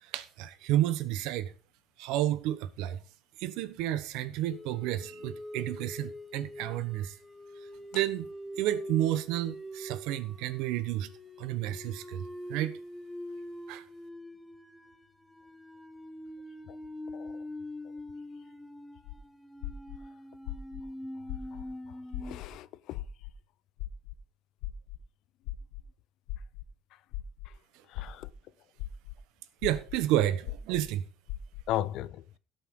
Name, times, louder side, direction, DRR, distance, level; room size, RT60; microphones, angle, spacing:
voice 1, 0.0-1.5 2.0-3.0 3.4-7.1 7.9-8.3 8.5-11.1 11.4-12.7 13.7-13.8 29.6-31.1, right 13 dB, 80° right, 1.2 m, -31 dB
sound 1, 4.5-22.4, left 1 dB, 5° left, 0.7 m, -44 dB
sound 2, 19.1-19.2 19.6-20.0 20.5-20.8 21.3-21.6 22.1-22.5 23.0-23.3 23.8-24.1 24.6-25.0 25.5-25.8 26.3-26.6 27.1-27.5 28.0-28.3 28.8-29.1 29.6-30.0 30.5-30.8 31.3-31.6, left 17 dB, 90° left, 1.0 m, -38 dB
voice 2, 22.2-23.0 27.9-28.3 31.7-32.2, left 13 dB, 60° left, 0.5 m, -35 dB
16.5 x 6.7 x 3.9 m
cardioid pair, 165°, 0 cm